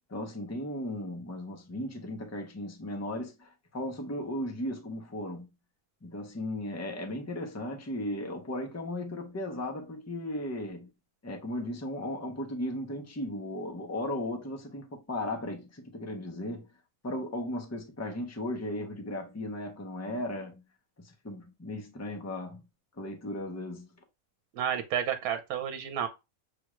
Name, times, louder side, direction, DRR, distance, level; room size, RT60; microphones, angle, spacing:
voice 1, 0.1-5.5 6.0-10.9 11.2-16.6 17.0-20.6 21.0-22.6 23.0-23.9, left 1 dB, 25° left, 0.3 m, -36 dB
voice 2, 24.5-26.1, right 9 dB, 80° right, 1.2 m, -31 dB
6.8 x 2.4 x 3.0 m
omnidirectional pair, 1.6 m